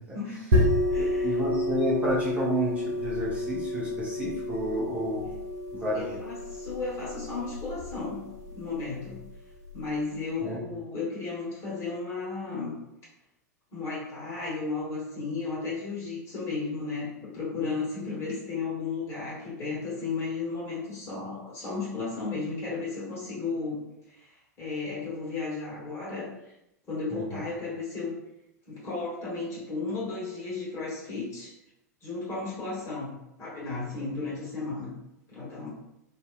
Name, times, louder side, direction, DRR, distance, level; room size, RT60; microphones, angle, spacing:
voice 1, 0.1-0.5 0.9-1.3 5.9-9.3 9.7-12.7 13.7-26.5 26.9-28.1 28.7-31.5 32.0-34.9 35.3-35.7, left 4 dB, 30° left, -6 dB, 1.3 m, -34 dB
sound 1, 0.5-9.9, left 1 dB, 65° right, 0.8 m, -30 dB
voice 2, 0.9-5.3 5.7-6.2 10.4-10.6 27.1-27.4, equal, 15° right, -7 dB, 0.7 m, -30 dB
2.7 x 2.4 x 2.3 m, 0.86 s
figure-of-eight pair, 95°, 9 cm